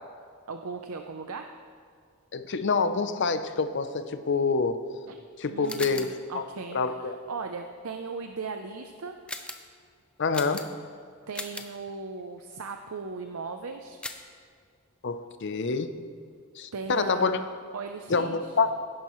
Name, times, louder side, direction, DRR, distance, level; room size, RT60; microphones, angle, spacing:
voice 1, 0.5-1.5 5.1-5.2 5.5-9.2 11.3-14.0 16.7-17.5 17.7-18.5, right 4 dB, 75° right, 6 dB, 0.6 m, -38 dB
voice 2, 2.3-4.8 5.4-6.4 6.7-7.2 10.2-10.7 15.0-15.9 16.6-17.4 18.1-18.7, left 4 dB, 55° left, 10 dB, 0.6 m, -27 dB
sound 1, 5.6-6.2 9.3-9.7 10.3-10.9 11.3-11.8 14.0-14.4, left 2 dB, 5° left, 0.5 m, -39 dB
17.0 x 10.5 x 3.1 m, 2.1 s
head